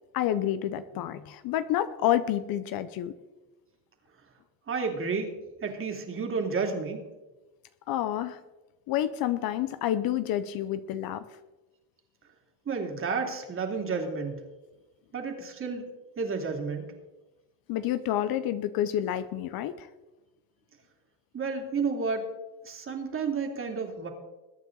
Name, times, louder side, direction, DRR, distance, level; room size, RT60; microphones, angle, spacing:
voice 1, 0.1-3.1 7.9-8.4 8.9-11.3 17.7-19.9, left 11 dB, 50° left, 13 dB, 0.9 m, -29 dB
voice 2, 4.7-5.3 5.6-7.1 12.7-14.4 15.1-16.8 21.3-22.3 22.6-24.1, right 4 dB, 30° right, 3 dB, 2.8 m, -31 dB
21.5 x 9.1 x 4.0 m, 1.1 s
supercardioid pair, 120°, 45 cm